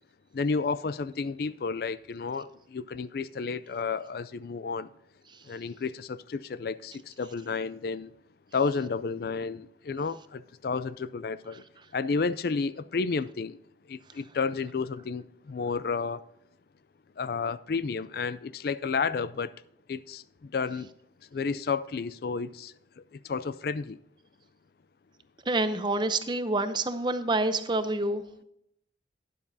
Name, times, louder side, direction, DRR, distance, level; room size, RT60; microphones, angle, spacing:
voice 1, 0.3-4.9 5.4-8.1 8.5-11.6 11.9-13.6 13.9-16.2 17.2-19.5 19.9-20.9 21.3-24.0, left 4 dB, 55° left, 0.4 m, -31 dB
voice 2, 25.5-28.4, right 2 dB, 25° right, 0.6 m, -27 dB
12.0 x 11.0 x 2.7 m
head